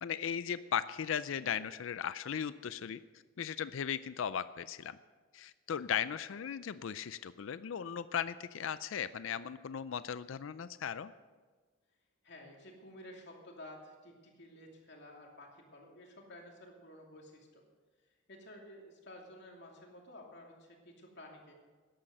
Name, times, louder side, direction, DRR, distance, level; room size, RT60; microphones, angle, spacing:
voice 1, 0.0-3.0 3.4-5.0 5.3-11.1, left 8 dB, 70° left, 15 dB, 0.4 m, -37 dB
voice 2, 12.2-17.6 18.3-21.5, left 1 dB, 55° left, 0 dB, 2.7 m, -53 dB
13.5 x 10.5 x 6.6 m, 1.4 s
head